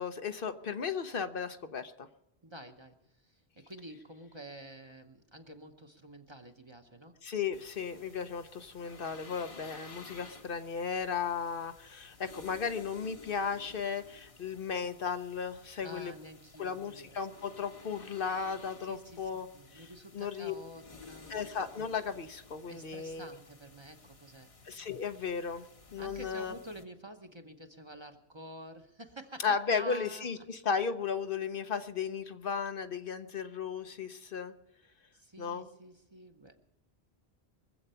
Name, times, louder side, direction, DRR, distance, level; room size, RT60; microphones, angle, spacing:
voice 1, 0.0-2.1 7.2-16.1 16.6-19.5 19.7-19.9 20.1-20.5 21.3-23.4 24.6-25.6 25.9-26.5 29.4-34.5 35.4-35.7, left 6 dB, 60° left, 9 dB, 0.9 m, -35 dB
voice 2, 2.4-3.0 3.2-7.2 15.8-17.6 18.8-21.4 22.7-24.5 26.0-30.3 35.1-36.6, equal, 30° right, 5 dB, 1.0 m, -49 dB
sound 1, 7.5-26.8, left 3 dB, 35° left, 1.0 m, -54 dB
23.5 x 7.9 x 5.6 m, 0.87 s
omnidirectional pair, 1.1 m